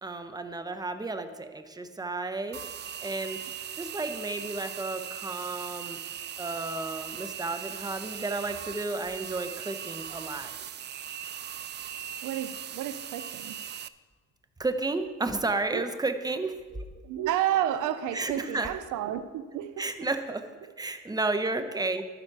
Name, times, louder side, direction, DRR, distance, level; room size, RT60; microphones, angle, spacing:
voice 1, 0.0-2.7 3.0-3.4 3.8-6.0 6.4-10.5 14.6-16.5 18.1-18.7 19.8-20.5 20.8-22.0, right 3 dB, 15° right, 0.9 m, -32 dB
sound 1, 2.5-13.9, right 9 dB, 35° right, 0.4 m, -39 dB
voice 2, 12.2-13.6 15.7-15.8 17.0-19.9, right 11 dB, 90° right, 0.6 m, -31 dB
11.5 x 10.0 x 4.7 m
cardioid pair, 90°, 30 cm